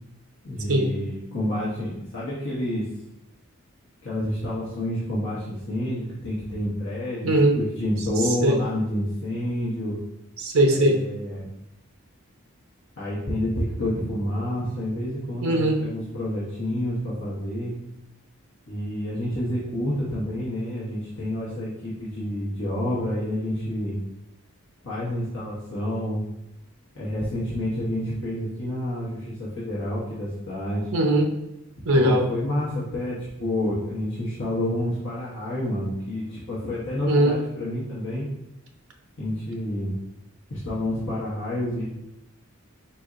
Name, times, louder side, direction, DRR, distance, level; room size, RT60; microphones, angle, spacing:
voice 1, 0.4-2.8 4.0-10.0 10.7-11.5 13.0-17.8 18.7-24.0 24.8-26.2 26.9-30.8 31.9-38.2 39.2-40.0 40.5-41.8, left 1 dB, 60° left, -8 dB, 1.0 m, -29 dB
voice 2, 7.2-7.6 8.4-8.6 10.4-11.0 15.4-15.8 30.9-31.3 31.9-32.3 37.0-37.4, right 1 dB, 70° right, 3 dB, 0.6 m, -20 dB
4.2 x 4.2 x 2.5 m, 0.84 s
head